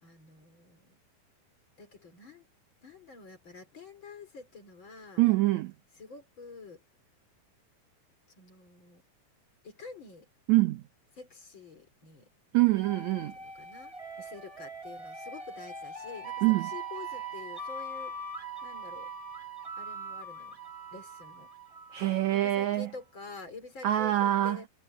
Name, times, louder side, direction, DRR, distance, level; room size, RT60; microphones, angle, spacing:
voice 1, 0.0-1.0 1.8-2.5 2.8-5.2 6.0-6.8 8.4-9.0 9.6-10.3 11.2-12.3 13.4-18.2 18.6-19.1 19.8-20.6 20.9-21.5 22.3-24.7, left 4 dB, 30° left, 4.3 m, -48 dB
voice 2, 5.2-5.7 10.5-10.8 12.5-13.3 16.4-16.7 21.9-22.9 23.8-24.6, right 16 dB, 80° right, 1.6 m, -25 dB
sound 1, 12.8-22.5, right 3 dB, 15° right, 1.3 m, -41 dB
omnidirectional pair, 4.4 m